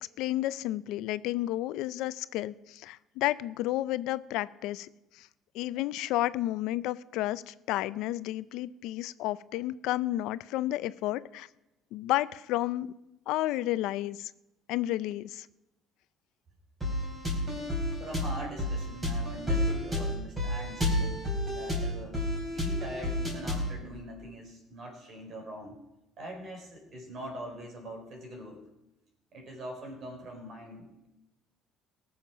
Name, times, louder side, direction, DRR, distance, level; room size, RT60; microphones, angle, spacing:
voice 1, 0.2-4.9 5.1-5.3 5.5-11.5 11.9-12.9 13.3-14.3 14.7-15.5, left 15 dB, 80° left, 16 dB, 0.5 m, -31 dB
sound 1, 16.8-23.8, left 1 dB, 15° right, 4.3 m, -31 dB
voice 2, 18.0-22.2 22.5-25.8 26.2-28.6 29.3-31.1, right 1 dB, 50° right, 2 dB, 4.5 m, -43 dB
18.5 x 7.2 x 6.0 m, 0.91 s
cardioid pair, 125°, 0 cm